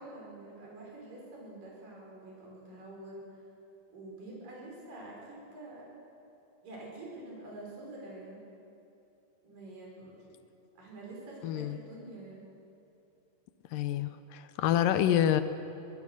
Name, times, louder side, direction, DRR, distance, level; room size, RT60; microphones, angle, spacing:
voice 1, 0.0-3.3 3.9-5.9 6.6-8.5 9.4-10.2 10.7-12.4, right 2 dB, 70° right, -3 dB, 6.8 m, -47 dB
voice 2, 11.4-11.8 13.7-15.4, left 11 dB, 80° left, 11 dB, 2.3 m, -27 dB
24.5 x 17.0 x 6.4 m, 2.9 s
omnidirectional pair, 4.0 m